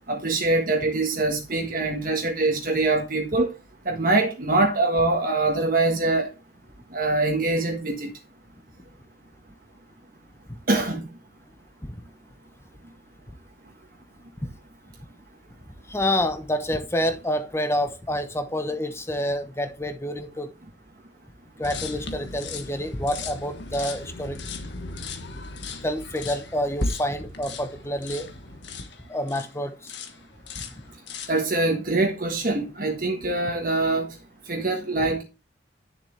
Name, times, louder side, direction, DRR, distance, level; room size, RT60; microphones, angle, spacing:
voice 1, 0.1-3.6 3.8-6.3 6.9-8.1 10.7-11.1 31.3-34.1 34.5-35.2, right 2 dB, 50° right, 1.4 m, -24 dB
voice 2, 15.9-20.5 21.6-24.4 25.8-28.3 29.1-29.9 30.6-30.8, left 1 dB, 15° left, 0.9 m, -28 dB
sound 1, 21.6-29.5 29.9-30.2 30.5-31.4, left 3 dB, 70° left, 1.5 m, -36 dB
10.5 x 7.0 x 3.3 m
head